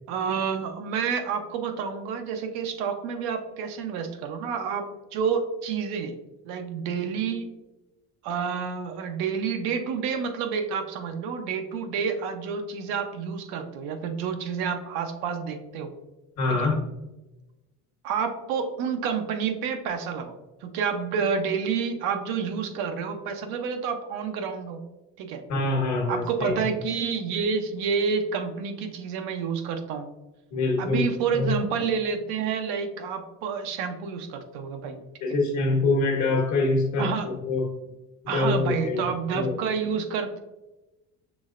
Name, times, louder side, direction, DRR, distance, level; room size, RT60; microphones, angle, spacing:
voice 1, 0.1-6.1 6.4-7.5 8.2-15.9 16.5-16.7 18.0-20.4 20.6-24.8 25.2-25.4 26.1-30.1 30.8-35.0 37.0-37.3 38.3-40.4, right 6 dB, 85° right, 6 dB, 0.7 m, -29 dB
voice 2, 16.4-16.8 25.5-26.5 30.5-31.1 31.3-31.6 35.2-37.7 38.2-39.6, left 3 dB, 50° left, 2 dB, 1.1 m, -25 dB
6.1 x 3.1 x 2.4 m, 1.0 s
cardioid pair, 115°, 36 cm